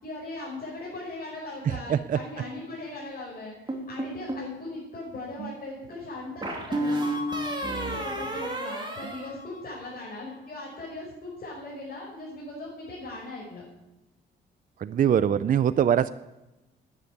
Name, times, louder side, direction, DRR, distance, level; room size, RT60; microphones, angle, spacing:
voice 1, 0.0-3.6 3.9-7.1 7.8-13.6, left 2 dB, 45° left, -6 dB, 5.6 m, -39 dB
sound 1, 3.7-4.5 6.4-10.0, right 1 dB, 25° right, 2.9 m, -31 dB
voice 2, 14.8-16.1, right 9 dB, 45° right, 14 dB, 0.5 m, -23 dB
10.5 x 9.9 x 9.4 m, 0.99 s
cardioid pair, 90°, 20 cm